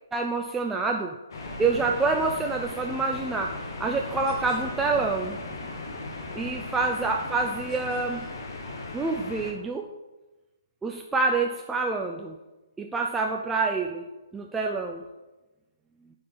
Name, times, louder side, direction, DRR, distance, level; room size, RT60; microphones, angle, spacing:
voice 1, 0.1-1.2 1.6-3.5 3.8-5.4 6.4-8.3 8.9-9.9 10.8-12.4 12.8-14.1 14.3-15.0, right 3 dB, 5° right, 2 dB, 0.3 m, -27 dB
sound 1, 1.3-9.5, left 2 dB, 60° left, 1.5 m, -38 dB
sound 2, 1.3-8.3, left 1 dB, 40° left, 2.2 m, -43 dB
7.1 x 4.8 x 4.0 m, 1.1 s
hypercardioid pair, 150°, 2 cm